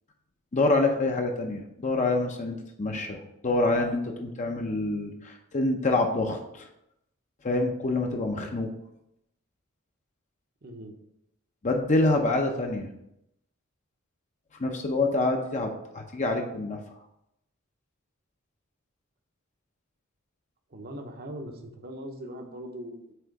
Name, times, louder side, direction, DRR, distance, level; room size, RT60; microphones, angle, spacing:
voice 1, 0.5-6.7 7.4-8.7 11.6-12.9 14.6-16.8, left 2 dB, 35° left, 3 dB, 0.7 m, -26 dB
voice 2, 10.6-11.0 20.7-23.1, equal, 50° right, 4 dB, 0.9 m, -40 dB
7.7 x 3.1 x 4.7 m, 0.81 s
head